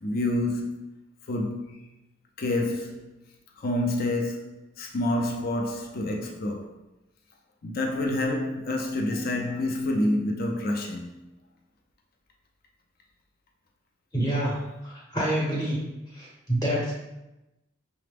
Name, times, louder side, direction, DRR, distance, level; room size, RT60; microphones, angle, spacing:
voice 1, 0.0-0.8 1.3-1.8 2.4-3.1 3.6-6.7 7.6-11.1, left 1 dB, 50° left, 0.5 m, -28 dB
voice 2, 14.1-15.8 16.1-16.9, right 1 dB, 15° left, 0.8 m, -27 dB
5.8 x 2.0 x 3.4 m
head